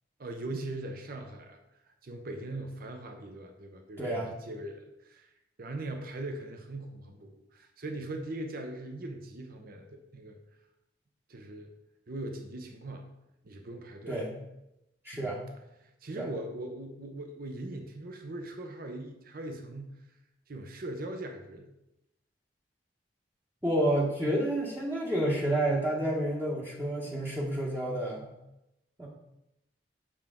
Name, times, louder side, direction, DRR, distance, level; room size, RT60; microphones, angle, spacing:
voice 1, 0.2-1.6 2.0-5.3 5.6-10.4 11.3-11.7 12.1-13.1 13.4-14.2 15.1-15.3 15.8-20.0 20.5-21.7, right 1 dB, 55° right, 4 dB, 0.7 m, -40 dB
voice 2, 4.0-4.3 14.1-14.3 15.0-15.4 16.1-16.3 23.6-28.3 29.0-29.1, right 1 dB, 15° right, -4 dB, 1.0 m, -29 dB
7.3 x 5.9 x 3.6 m, 0.89 s
head